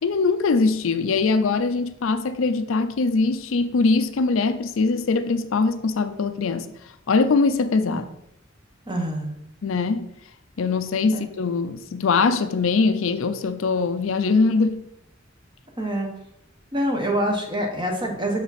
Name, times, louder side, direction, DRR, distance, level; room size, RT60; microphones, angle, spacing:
voice 1, 0.0-6.7 7.1-8.1 9.6-10.1 10.6-14.8, left 4 dB, 75° left, 0.5 m, -22 dB
voice 2, 8.9-9.4 11.1-11.2 15.8-16.1 16.7-18.4, right 1 dB, 25° right, 1.1 m, -25 dB
5.9 x 4.8 x 4.1 m
head